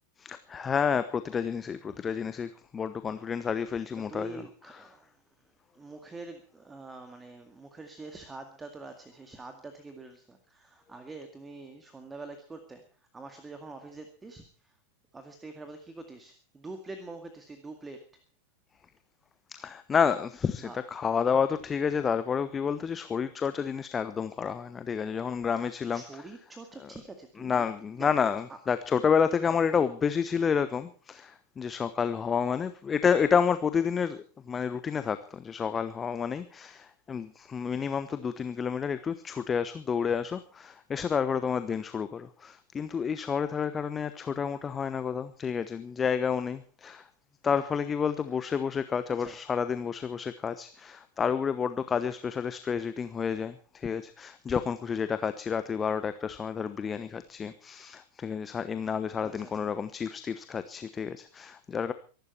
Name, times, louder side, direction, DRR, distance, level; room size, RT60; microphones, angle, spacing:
voice 1, 0.2-4.4 4.7-4.8 19.5-26.0 27.4-47.1 47.4-61.9, left 6 dB, 20° left, 12 dB, 1.0 m, -30 dB
voice 2, 3.9-5.1 5.7-12.8 13.1-14.8 15.1-18.0 20.6-20.8 25.6-27.6 28.0-28.1 28.5-28.6 29.4-29.9 49.1-49.4 57.2-57.4 59.2-59.7, right 3 dB, 15° right, 7 dB, 2.1 m, -45 dB
23.5 x 12.0 x 4.5 m, 0.38 s
figure-of-eight pair, 90°, 0 cm